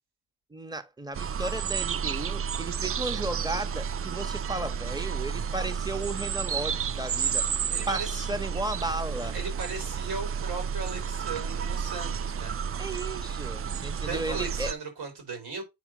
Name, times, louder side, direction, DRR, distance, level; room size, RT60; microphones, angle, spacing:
voice 1, 0.5-7.5 7.9-9.4 12.8-14.7, right 2 dB, 10° right, 1.2 m, -34 dB
sound 1, 1.1-14.7, right 7 dB, 35° right, 0.4 m, -31 dB
voice 2, 7.7-8.3 9.3-12.9 14.0-15.6, right 4 dB, 85° right, 4.3 m, -37 dB
8.3 x 2.8 x 6.1 m
cardioid pair, 80°, 39 cm